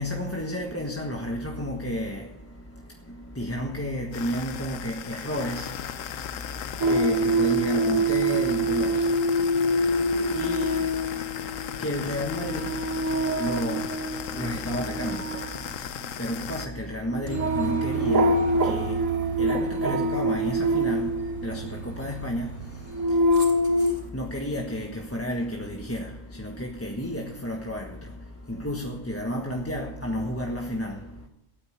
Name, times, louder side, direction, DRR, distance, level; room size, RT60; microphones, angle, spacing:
voice 1, 0.0-31.3, equal, 10° left, 1.4 m, -32 dB
sound 1, 4.1-16.7, left 9 dB, 80° left, 1.1 m, -36 dB
sound 2, 6.8-21.9 22.6-23.9, right 1 dB, 85° right, 1.4 m, -25 dB
Aircraft, 17.3-24.1, right 7 dB, 35° left, 4.2 m, -37 dB
16.0 x 9.5 x 8.1 m
omnidirectional pair, 1.3 m